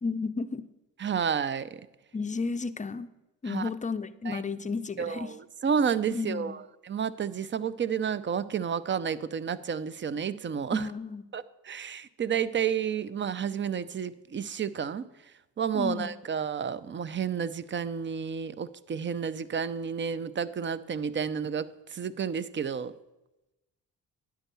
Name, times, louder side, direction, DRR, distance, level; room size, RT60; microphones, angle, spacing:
voice 1, 0.0-0.7 2.1-3.1 3.4-5.3 6.1-6.6 10.7-11.2 15.7-16.1, left 4 dB, 20° left, 12 dB, 0.5 m, -33 dB
voice 2, 1.0-1.9 3.5-3.7 4.3-4.4 5.0-10.9 11.3-15.0 15.6-22.9, right 7 dB, 30° right, 16 dB, 0.5 m, -31 dB
10.0 x 4.6 x 6.8 m, 0.99 s
supercardioid pair, 55°, 38 cm